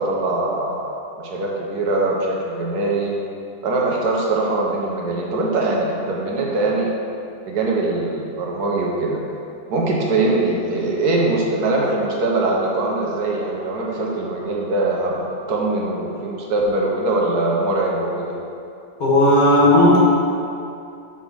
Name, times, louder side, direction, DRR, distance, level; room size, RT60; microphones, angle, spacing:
voice 1, 0.0-3.2 3.6-6.9 7.5-9.2 9.7-18.3, right 2 dB, 65° right, -2 dB, 1.3 m, -22 dB
voice 2, 19.0-20.0, left 1 dB, 55° left, -6 dB, 2.0 m, -14 dB
5.6 x 4.3 x 6.1 m, 2.6 s
omnidirectional pair, 1.9 m